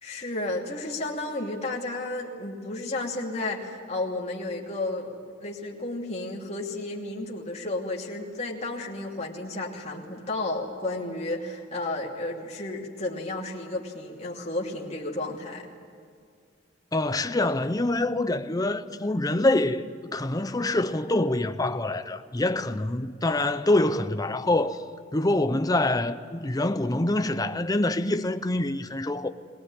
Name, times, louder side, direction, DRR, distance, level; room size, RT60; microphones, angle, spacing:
voice 1, 0.0-15.7, left 2 dB, 35° left, 2.7 m, -32 dB
voice 2, 16.9-19.8 20.1-24.8 25.1-29.3, left 2 dB, 20° left, 0.8 m, -25 dB
22.0 x 18.5 x 9.7 m
head